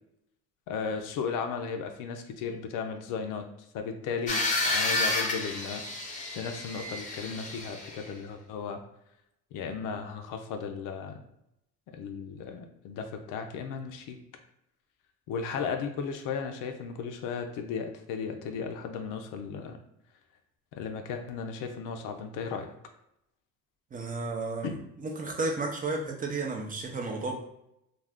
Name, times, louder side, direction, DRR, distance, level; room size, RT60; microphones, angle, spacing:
voice 1, 0.7-3.4 3.7-8.8 9.5-11.2 11.9-14.2 15.3-19.8 20.7-22.7 24.6-24.8, left 6 dB, 70° left, 6 dB, 0.5 m, -35 dB
sound 1, 4.3-8.1, left 2 dB, 25° left, 0.6 m, -30 dB
voice 2, 23.9-24.7 25.0-27.4, right 3 dB, 25° right, 1 dB, 0.4 m, -32 dB
2.5 x 2.3 x 3.4 m, 0.79 s
cardioid pair, 115°, 33 cm